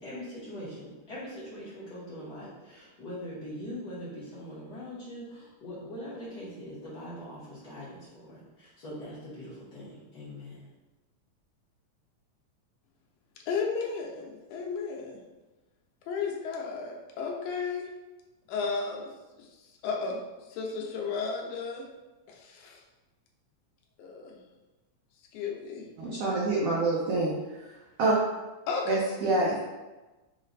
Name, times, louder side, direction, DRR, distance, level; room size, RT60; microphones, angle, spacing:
voice 1, 0.0-10.7, equal, 60° left, -11 dB, 1.0 m, -42 dB
voice 2, 13.5-15.2 16.1-17.8 18.5-19.1 19.8-20.2 20.5-21.9 22.3-22.8 24.0-24.3 25.3-25.8 28.7-29.0, left 5 dB, 80° left, 0 dB, 2.0 m, -33 dB
voice 3, 26.0-27.3 27.6-27.7 28.0-28.1 28.9-29.6, right 2 dB, 85° right, -5 dB, 1.3 m, -26 dB
5.7 x 2.1 x 3.9 m, 1.1 s
omnidirectional pair, 3.6 m